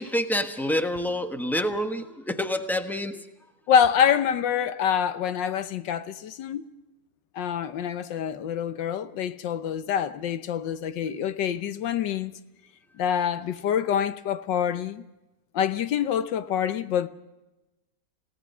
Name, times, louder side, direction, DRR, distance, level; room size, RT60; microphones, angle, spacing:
voice 1, 0.0-3.3, equal, ahead, 0.9 m, -27 dB
voice 2, 3.7-6.6 7.3-12.3 13.0-15.0 15.5-17.1, left 8 dB, 80° left, 1.5 m, -26 dB
29.0 x 17.0 x 5.5 m
omnidirectional pair, 1.9 m